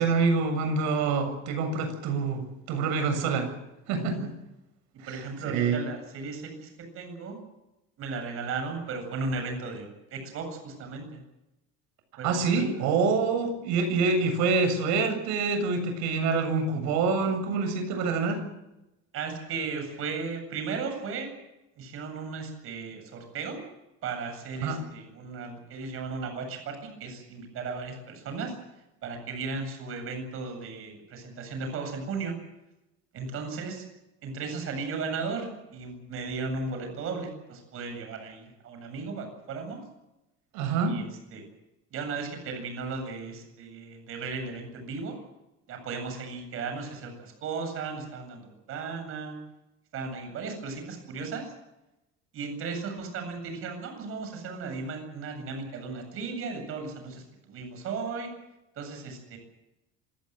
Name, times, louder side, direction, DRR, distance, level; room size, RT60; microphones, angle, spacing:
voice 1, 0.0-3.5 3.9-4.3 5.0-5.8 12.2-18.4 24.6-24.8 40.5-41.0, right 4 dB, 70° right, 7 dB, 7.5 m, -26 dB
voice 2, 3.9-4.3 5.0-6.7 6.9-7.4 8.0-11.2 12.2-12.7 19.1-21.3 21.8-23.6 24.0-28.6 29.0-32.3 33.1-33.8 34.2-39.8 40.8-41.4 41.9-45.2 45.7-49.4 49.9-51.5 52.3-58.3 58.8-59.4, right 4 dB, 50° right, 5 dB, 8.0 m, -36 dB
27.0 x 17.0 x 7.8 m, 0.95 s
cardioid pair, 145°, 29 cm